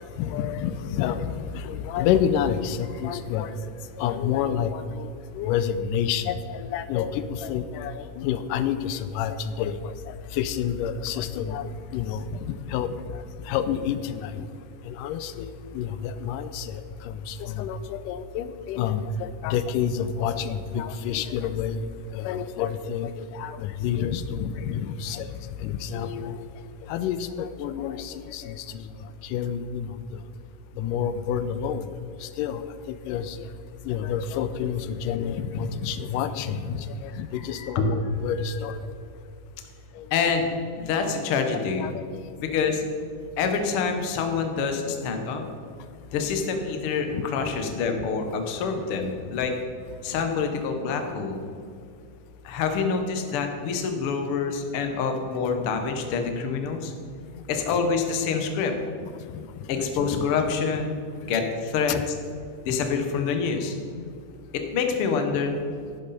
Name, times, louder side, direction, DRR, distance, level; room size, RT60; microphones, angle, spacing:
voice 1, 0.0-3.5 4.0-12.9 13.5-14.5 14.9-21.8 22.1-25.3 25.6-26.5 26.8-28.9 29.2-29.9 30.8-31.9 32.2-33.4 33.9-38.8 40.0-40.1 41.5-42.3 47.1-47.3 47.7-47.8 57.7-57.8 59.0-59.4 59.9-60.3 61.9-62.0, left 8 dB, 85° left, 12 dB, 2.1 m, -29 dB
voice 2, 37.5-37.9 40.1-40.5 40.7-41.9 42.4-42.8 43.4-45.4 46.1-49.5 50.0-51.4 52.4-56.9 57.5-58.7 59.7-61.9 62.6-63.7 64.5-65.6, left 5 dB, 60° left, 5 dB, 1.5 m, -26 dB
12.0 x 10.5 x 4.2 m, 2.4 s
omnidirectional pair, 3.7 m